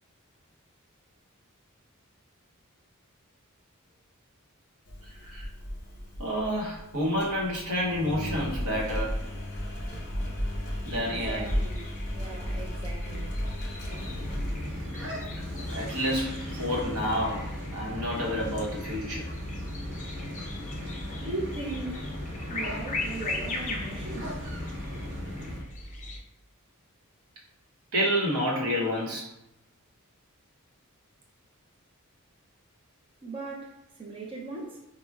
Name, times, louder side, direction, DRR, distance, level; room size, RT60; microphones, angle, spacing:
Engine, 4.9-15.7, equal, 50° left, 0.8 m, -35 dB
voice 1, 6.2-9.1 10.8-11.4 15.7-17.5 17.7-19.3 20.6-20.7 27.9-29.3, equal, 85° right, -4 dB, 0.9 m, -29 dB
sound 1, 10.9-26.2, left 2 dB, 35° left, 0.4 m, -40 dB
voice 2, 10.9-13.4 21.2-22.1 22.5-24.4 33.2-34.8, right 2 dB, 25° right, -4 dB, 0.5 m, -38 dB
sound 2, 13.9-25.6, left 1 dB, 60° right, 0.8 m, -37 dB
4.5 x 2.1 x 2.2 m, 0.87 s
head